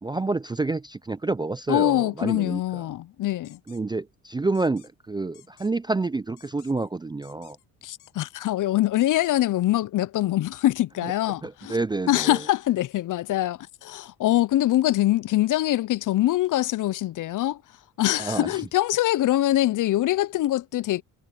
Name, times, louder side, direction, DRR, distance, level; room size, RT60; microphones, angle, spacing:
voice 1, 0.0-2.6 3.7-7.6 11.4-12.4 18.2-18.5, right 3 dB, 10° right, 0.4 m, -28 dB
voice 2, 1.7-3.6 7.8-11.8 12.1-17.6 18.0-21.0, left 14 dB, 55° left, 0.6 m, -24 dB
sound 1, 3.4-3.8 4.5-4.9 5.3-5.7 6.4-6.9 7.2-7.6 8.0-8.5 9.0-9.3, left 15 dB, 85° left, 2.0 m, -55 dB
cardioid pair, 85°, 37 cm